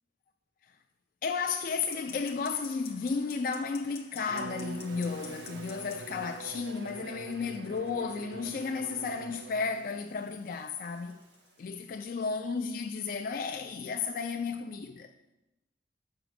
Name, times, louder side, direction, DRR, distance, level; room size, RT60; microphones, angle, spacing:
voice 1, 1.2-11.2 11.6-15.1, left 5 dB, 50° left, 0.3 m, -33 dB
sound 1, 1.9-13.9, left 6 dB, 30° left, 0.7 m, -54 dB
Waves surf, 4.2-7.4 9.2-12.3, right 3 dB, 90° right, 1.4 m, -57 dB
Bowed string instrument, 4.3-9.9, right 4 dB, 65° right, 0.4 m, -44 dB
6.0 x 5.0 x 6.2 m
head